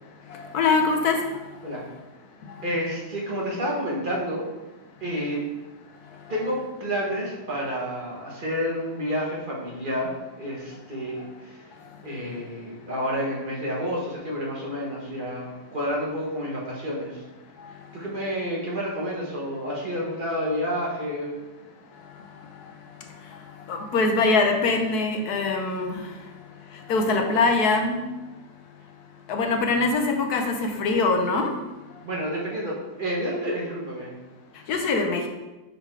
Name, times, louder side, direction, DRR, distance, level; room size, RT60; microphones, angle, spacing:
voice 1, 0.3-1.2 17.6-17.7 23.7-26.0 26.9-28.0 29.3-31.5 34.7-35.3, left 3 dB, 70° left, 3 dB, 1.2 m, -23 dB
voice 2, 2.6-4.5 5.0-5.4 6.3-10.1 10.4-11.6 12.0-17.2 17.9-21.3 32.0-34.1, equal, 35° right, -4 dB, 1.5 m, -29 dB
5.5 x 4.1 x 4.5 m, 1.1 s
omnidirectional pair, 1.7 m